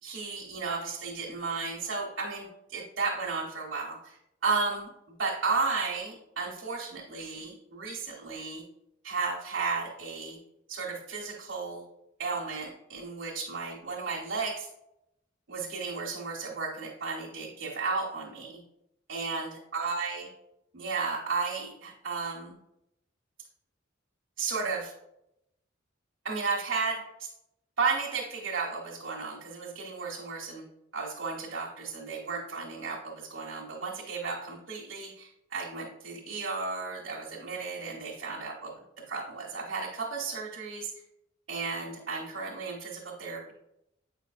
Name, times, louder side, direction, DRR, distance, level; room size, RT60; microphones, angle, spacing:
voice 1, 0.0-4.9 5.2-8.6 9.0-10.4 10.7-11.8 12.2-14.7 15.5-18.6 19.1-20.3 20.7-22.6 24.4-24.9 26.2-27.3 27.8-30.6 30.9-38.7 39.1-40.9 41.5-43.5, right 4 dB, 65° right, -6 dB, 1.1 m, -34 dB
8.3 x 5.1 x 2.5 m, 0.83 s
head